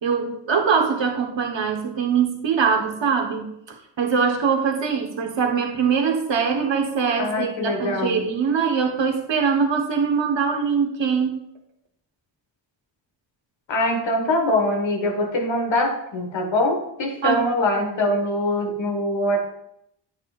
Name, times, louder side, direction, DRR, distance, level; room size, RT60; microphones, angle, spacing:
voice 1, 0.0-11.4 17.2-17.5, right 6 dB, 80° right, 2 dB, 1.4 m, -22 dB
voice 2, 7.2-8.2 13.7-19.5, left 1 dB, 85° left, 3 dB, 1.6 m, -23 dB
9.5 x 8.6 x 2.5 m, 0.78 s
wide cardioid pair, 85°, 44 cm